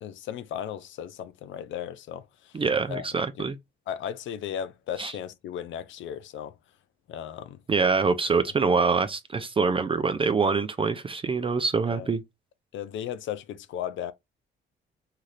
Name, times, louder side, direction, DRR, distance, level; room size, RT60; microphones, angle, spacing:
voice 1, 0.0-2.6 2.9-3.1 3.4-3.5 3.9-6.5 7.1-7.6 11.9-12.1 12.7-14.1, left 9 dB, 75° left, 0.5 m, -36 dB
voice 2, 2.5-3.6 5.0-5.1 7.7-12.2, right 4 dB, 25° right, 0.4 m, -25 dB
2.8 x 2.4 x 3.2 m
cardioid pair, 90°, 20 cm